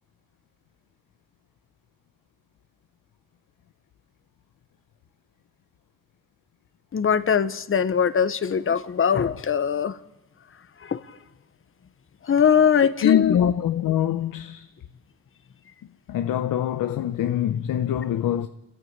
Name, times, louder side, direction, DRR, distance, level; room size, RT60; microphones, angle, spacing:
voice 1, 6.9-10.0 10.8-11.2 12.2-13.5, left 7 dB, 40° left, 1.1 m, -21 dB
voice 2, 13.0-14.7 16.1-18.5, left 11 dB, 70° left, 0.9 m, -24 dB
28.0 x 13.5 x 8.6 m
cardioid pair, 95°, 33 cm